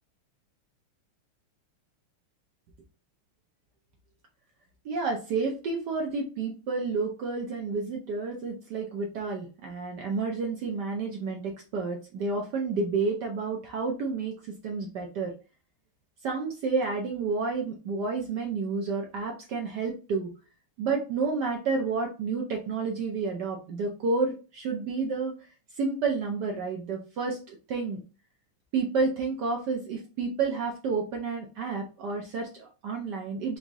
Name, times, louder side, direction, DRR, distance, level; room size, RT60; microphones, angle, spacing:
voice 1, 4.8-14.3 14.6-15.3 16.2-20.3 20.8-25.3 25.8-28.0 28.7-33.6, right 4 dB, 65° right, 1 dB, 1.1 m, -30 dB
4.0 x 2.6 x 3.4 m, 0.33 s
omnidirectional pair, 2.4 m